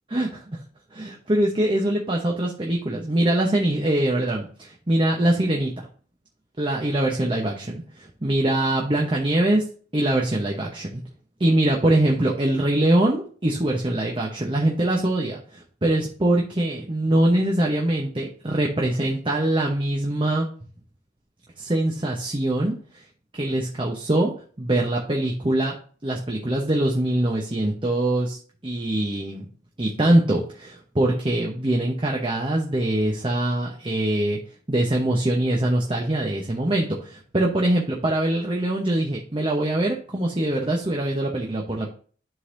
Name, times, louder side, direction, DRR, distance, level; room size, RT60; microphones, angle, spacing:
voice 1, 0.1-0.6 0.9-5.9 6.6-9.6 9.9-11.0 11.4-20.5 21.6-22.7 23.3-24.3 24.6-25.7 26.0-28.4 28.6-29.5 29.8-34.4 34.7-42.0, right 1 dB, 30° right, -1 dB, 0.9 m, -23 dB
11.5 x 3.9 x 2.6 m, 0.43 s
head